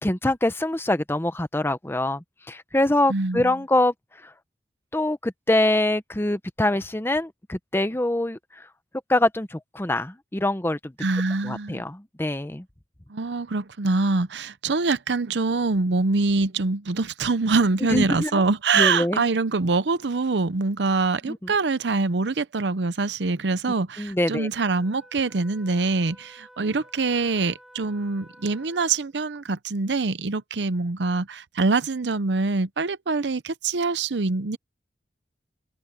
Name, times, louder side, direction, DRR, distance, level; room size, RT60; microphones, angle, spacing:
voice 1, 0.0-3.9 4.9-8.4 9.1-10.9 11.4-12.6 17.9-18.4 18.7-19.2 21.3-21.5 24.0-24.5, left 1 dB, 15° left, 0.8 m, -24 dB
voice 2, 3.1-3.6 11.0-11.8 13.1-34.6, right 3 dB, 75° right, 0.7 m, -24 dB
Wind instrument woodwind instrument, 24.5-29.2, equal, ahead, 4.6 m, -52 dB
head